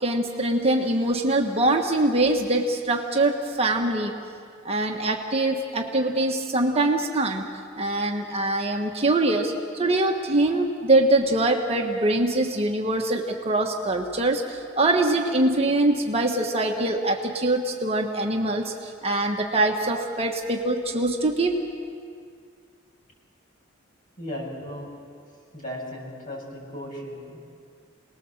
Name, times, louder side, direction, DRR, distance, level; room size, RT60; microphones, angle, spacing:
voice 1, 0.0-4.1 4.6-7.4 7.8-21.6, right 2 dB, 30° right, 2 dB, 1.4 m, -23 dB
voice 2, 24.2-24.9 25.5-27.4, left 1 dB, 40° left, -2 dB, 7.3 m, -36 dB
27.5 x 20.0 x 7.4 m, 2.2 s
head